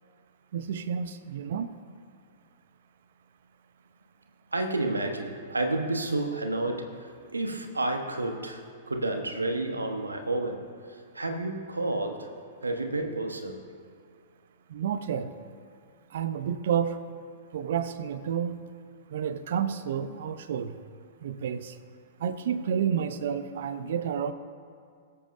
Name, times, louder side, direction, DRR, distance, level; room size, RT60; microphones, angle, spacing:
voice 1, 0.5-1.7 14.7-15.3 16.1-17.0 17.5-18.6 19.1-20.8 21.2-21.7 22.2-24.3, right 8 dB, 60° right, 12 dB, 0.7 m, -30 dB
voice 2, 4.5-7.0 7.3-10.7 11.1-12.3 12.6-13.6, right 2 dB, 85° right, 5 dB, 1.1 m, -30 dB
22.5 x 8.4 x 2.6 m, 2.2 s
figure-of-eight pair, 105°, 0 cm